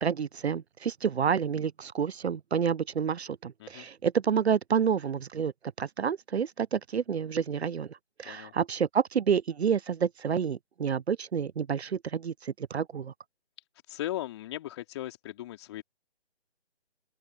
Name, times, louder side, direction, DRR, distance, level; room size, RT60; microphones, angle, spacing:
voice 1, 0.0-5.5 5.8-13.1, right 7 dB, 75° right, 0.5 m, -29 dB
voice 2, 13.9-15.8, left 14 dB, 25° left, 3.4 m, -37 dB
figure-of-eight pair, 145°, 33 cm